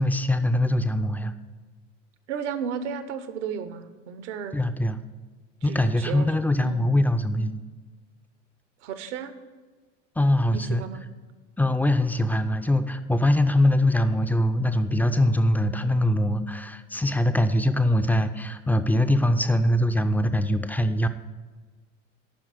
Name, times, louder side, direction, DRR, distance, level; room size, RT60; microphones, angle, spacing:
voice 1, 0.0-1.3 4.5-5.0 5.6-7.6 10.2-10.8 11.6-21.1, left 1 dB, 5° left, 9 dB, 0.4 m, -22 dB
voice 2, 2.3-4.6 5.6-6.3 6.6-6.9 8.8-9.3 10.5-11.0, right 7 dB, 70° right, 11 dB, 0.9 m, -34 dB
8.9 x 5.9 x 8.0 m, 1.4 s
figure-of-eight pair, 75°, 37 cm